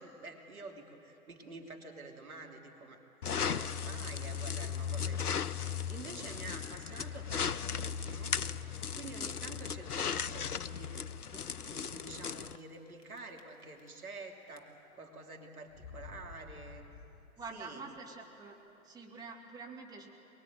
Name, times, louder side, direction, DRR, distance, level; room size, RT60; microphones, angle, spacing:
voice 1, 0.0-3.0 3.4-8.6 8.9-11.0 11.2-16.8 17.5-17.8, right 3 dB, 75° right, 2 dB, 3.0 m, -49 dB
sound 1, 3.2-12.6, left 7 dB, 85° left, 0.7 m, -36 dB
sound 2, 9.9-10.4 11.0-11.1 11.3-11.4 12.3-12.7 13.0-14.2 14.5-15.0 15.7-17.6, left 5 dB, 45° left, 1.9 m, -53 dB
voice 2, 17.4-18.6 18.8-20.1, right 4 dB, 10° right, 0 dB, 2.0 m, -46 dB
22.5 x 22.5 x 9.2 m, 2.9 s
figure-of-eight pair, 115°, 44 cm